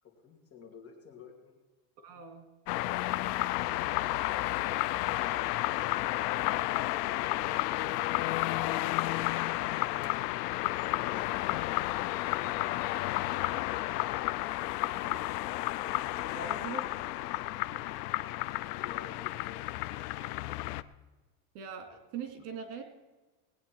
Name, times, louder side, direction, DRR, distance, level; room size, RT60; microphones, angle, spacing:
voice 1, 0.0-1.6 18.8-19.7 21.9-22.0 22.4-22.5, left 6 dB, 30° left, 0 dB, 2.9 m, -54 dB
voice 2, 2.0-2.5 15.0-15.2 16.3-16.8 17.6-17.8 21.5-22.8, right 5 dB, 70° right, 6 dB, 2.5 m, -42 dB
sound 1, 2.7-20.8, left 17 dB, 80° left, 0.7 m, -32 dB
19.5 x 9.5 x 4.6 m, 1.2 s
supercardioid pair, 155°, 47 cm